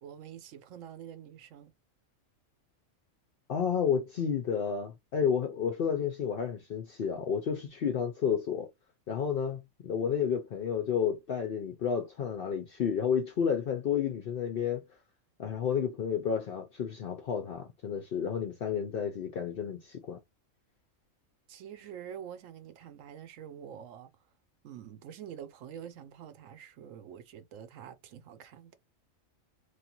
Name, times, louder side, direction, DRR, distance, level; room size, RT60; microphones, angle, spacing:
voice 1, 0.0-1.7 21.5-24.1 24.6-28.7, right 9 dB, 75° right, 1.0 m, -46 dB
voice 2, 3.5-8.7 9.1-14.8 15.4-20.2, left 7 dB, 65° left, 0.6 m, -31 dB
3.1 x 2.4 x 2.8 m
omnidirectional pair, 1.4 m